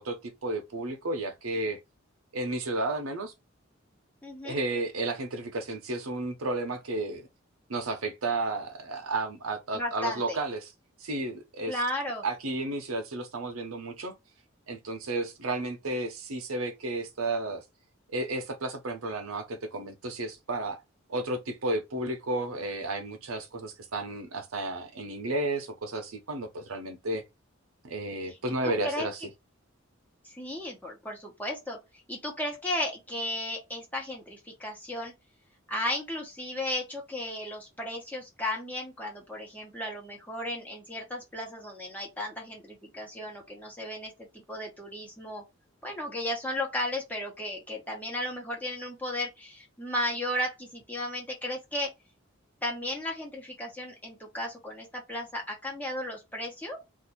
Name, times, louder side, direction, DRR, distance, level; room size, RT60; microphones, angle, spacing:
voice 1, 0.0-1.8 2.3-3.3 4.4-7.3 7.7-10.7 11.0-11.8 12.2-14.1 14.7-17.6 18.1-20.8 21.1-27.2 27.8-29.2, right 2 dB, 80° right, 0.8 m, -32 dB
voice 2, 4.2-4.6 9.7-10.4 11.7-12.2 28.3-28.4 28.6-29.1 30.2-31.8 32.1-35.1 35.7-45.4 45.8-51.9 52.6-56.8, left 1 dB, 10° left, 1.0 m, -34 dB
2.7 x 2.5 x 4.1 m
head